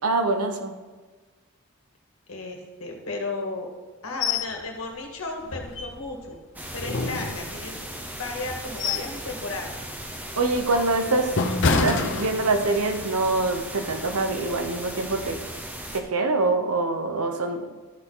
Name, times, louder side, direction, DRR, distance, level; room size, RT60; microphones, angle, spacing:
voice 1, 0.0-0.7 10.4-11.3 11.8-15.4 15.9-17.7, right 3 dB, 85° right, 6 dB, 1.0 m, -24 dB
voice 2, 2.3-3.7 4.0-6.4 6.7-7.8 8.2-9.8, left 3 dB, 75° left, 1 dB, 1.8 m, -34 dB
sound 1, 4.2-4.5 4.9-5.0 5.5-6.3 6.8-7.8 8.4-9.2 9.6-9.8 10.4-12.8 13.2-13.4, left 4 dB, 55° left, 0.8 m, -27 dB
sound 2, 6.6-16.0, right 1 dB, 10° right, 0.7 m, -37 dB
12.5 x 6.0 x 3.9 m, 1.3 s
head